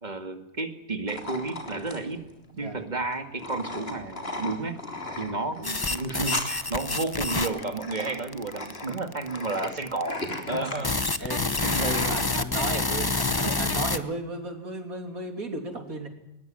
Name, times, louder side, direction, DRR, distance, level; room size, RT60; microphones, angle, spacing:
voice 1, 0.0-2.2 2.6-4.8 5.2-11.9, right 3 dB, 30° right, 8 dB, 2.2 m, -32 dB
sound 1, 1.1-12.4, left 1 dB, 40° left, 3.9 m, -37 dB
voice 2, 2.5-2.9 10.5-10.9 11.2-16.1, right 2 dB, 75° right, 5 dB, 3.6 m, -34 dB
sound 2, 5.6-14.0, left 3 dB, 20° left, 0.8 m, -28 dB
20.5 x 20.5 x 9.1 m, 0.85 s
omnidirectional pair, 1.5 m